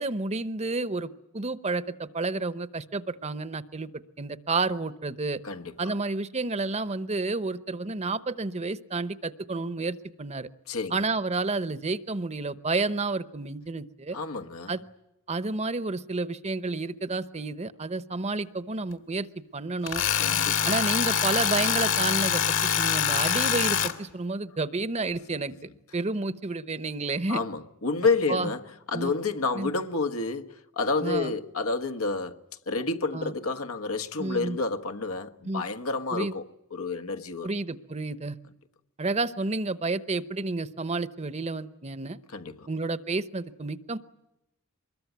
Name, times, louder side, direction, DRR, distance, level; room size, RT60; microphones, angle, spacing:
voice 1, 0.0-3.9 4.2-5.4 5.8-10.5 10.9-14.2 14.7-14.8 15.3-19.3 19.5-20.0 20.6-27.4 28.3-28.5 28.9-29.1 29.5-29.7 31.0-31.3 33.1-33.3 34.2-34.6 35.4-35.6 36.1-36.4 37.4-38.4 39.0-42.2 42.7-44.0, right 3 dB, 30° right, 0.8 m, -30 dB
voice 2, 5.4-5.9 10.7-10.9 14.1-14.7 20.2-20.7 27.3-28.6 28.9-32.4 32.7-36.4 36.7-37.5 42.3-42.7, left 3 dB, 85° left, 1.4 m, -29 dB
Tools, 19.9-23.9, left 8 dB, 65° left, 2.0 m, -25 dB
24.5 x 21.5 x 9.3 m
head